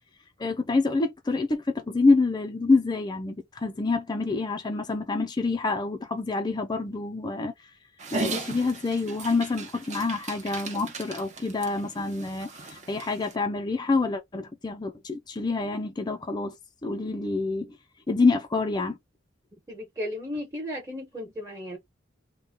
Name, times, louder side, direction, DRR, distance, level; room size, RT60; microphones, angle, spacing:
voice 1, 0.4-7.5 8.1-16.5 16.8-17.8 18.1-19.0, left 3 dB, 20° left, 0.4 m, -27 dB
Dog, 8.0-13.3, right 4 dB, 40° right, 0.9 m, -37 dB
voice 2, 19.7-21.8, left 1 dB, 15° right, 1.2 m, -35 dB
3.5 x 2.2 x 3.7 m
head